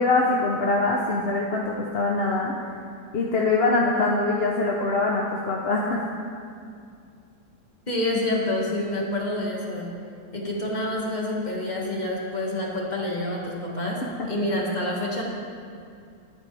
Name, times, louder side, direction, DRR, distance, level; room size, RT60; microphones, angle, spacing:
voice 1, 0.0-2.5 3.1-6.0 14.2-14.3, left 3 dB, 45° left, -2 dB, 0.9 m, -23 dB
voice 2, 7.9-9.9 10.3-15.2, left 1 dB, 25° left, -3 dB, 2.0 m, -27 dB
20.0 x 8.8 x 3.4 m, 2.4 s
omnidirectional pair, 1.8 m